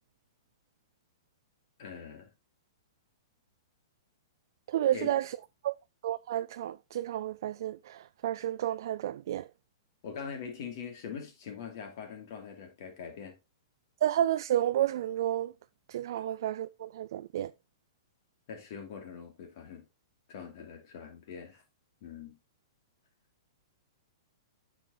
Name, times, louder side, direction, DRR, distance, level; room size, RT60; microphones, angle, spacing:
voice 1, 1.8-2.3 4.9-5.1 10.0-13.4 16.2-16.3 18.5-19.8 20.3-21.6 22.0-22.4, left 6 dB, 55° left, 3.0 m, -43 dB
voice 2, 4.7-5.4 5.6-5.8 6.0-9.5 14.0-15.5 15.9-17.5, right 12 dB, 60° right, 0.3 m, -31 dB
9.0 x 6.1 x 3.1 m
hypercardioid pair, 115°, 2 cm